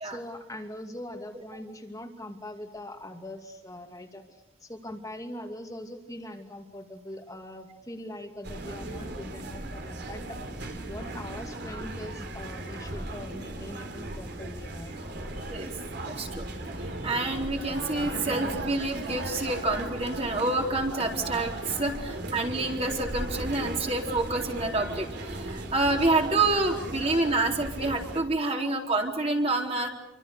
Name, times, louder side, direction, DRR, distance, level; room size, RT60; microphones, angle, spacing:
voice 1, 0.0-14.9, left 1 dB, 15° left, 2 dB, 2.5 m, -42 dB
sound 1, 8.4-28.2, right 1 dB, 55° right, 3.8 m, -37 dB
voice 2, 16.0-16.4 16.8-29.9, right 2 dB, 30° right, 1 dB, 4.0 m, -28 dB
27.5 x 25.0 x 6.8 m, 0.97 s
head